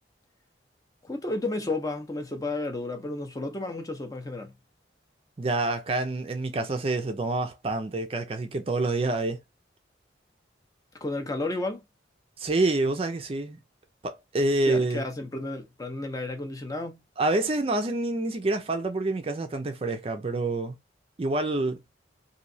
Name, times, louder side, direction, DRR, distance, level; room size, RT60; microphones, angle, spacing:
voice 1, 1.0-4.5 11.0-11.8 14.6-17.0, left 2 dB, 20° left, 0.6 m, -32 dB
voice 2, 5.4-9.4 12.4-13.6 14.0-15.0 17.2-20.8 21.2-21.8, right 2 dB, 30° right, 0.4 m, -27 dB
3.0 x 2.6 x 2.6 m
head